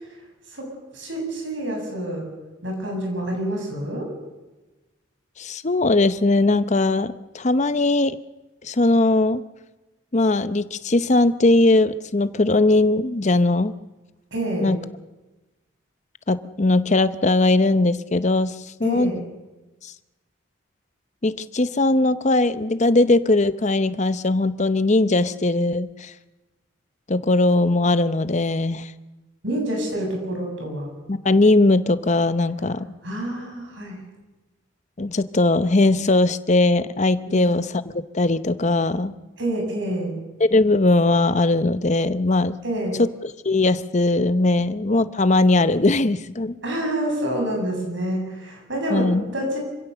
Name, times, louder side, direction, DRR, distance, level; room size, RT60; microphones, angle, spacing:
voice 1, 0.5-2.3 2.6-4.1 14.3-14.7 18.8-19.2 29.4-30.9 33.0-34.0 37.3-37.4 39.4-40.2 42.6-43.0 46.6-49.6, right 1 dB, 65° right, 2 dB, 7.4 m, -27 dB
voice 2, 5.4-8.2 8.6-9.4 10.1-13.7 14.6-14.8 16.3-18.5 18.8-19.1 19.8-19.9 21.2-26.1 27.1-28.9 31.1-32.9 35.0-39.1 40.4-42.6 43.0-46.6 48.9-49.2, left 2 dB, 35° left, 13 dB, 0.8 m, -20 dB
26.5 x 16.5 x 6.8 m, 1.1 s
head